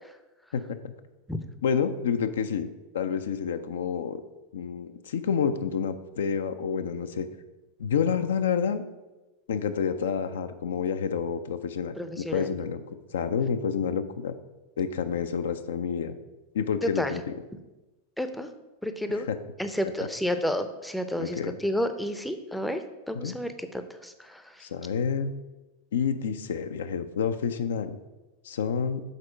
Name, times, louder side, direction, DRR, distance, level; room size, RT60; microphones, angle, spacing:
voice 1, 0.5-0.9 1.6-2.7 2.9-4.2 4.5-7.3 7.8-8.8 9.5-12.8 13.1-14.3 14.8-16.2 16.5-17.2 19.1-19.4 21.2-21.5 23.1-23.3 24.6-25.3 25.9-28.0 28.4-29.0, left 6 dB, 60° left, 9 dB, 0.4 m, -29 dB
voice 2, 12.0-12.5 17.0-17.1 18.2-18.5 18.8-19.3 19.6-24.7, equal, ahead, 8 dB, 0.6 m, -31 dB
6.5 x 4.3 x 6.0 m, 1.1 s
figure-of-eight pair, 90°, 0 cm